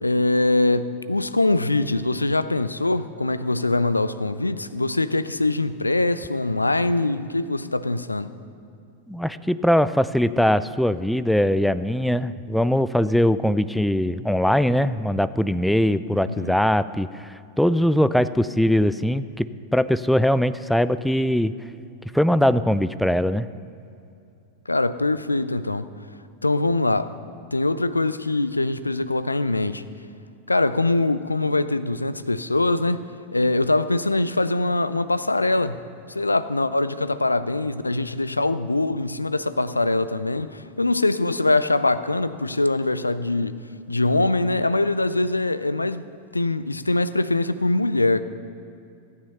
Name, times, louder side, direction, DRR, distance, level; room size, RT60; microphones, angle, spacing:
voice 1, 0.0-8.3 16.3-16.5 24.7-25.9 26.4-27.2 27.5-29.8 30.5-33.0 33.3-35.8 36.1-43.5 43.9-46.1 46.3-48.2, left 2 dB, 80° left, 0.4 m, -23 dB
voice 2, 9.1-21.5 22.1-23.5, equal, ahead, 0.3 m, -21 dB
14.5 x 9.6 x 5.5 m
figure-of-eight pair, 90°, 0 cm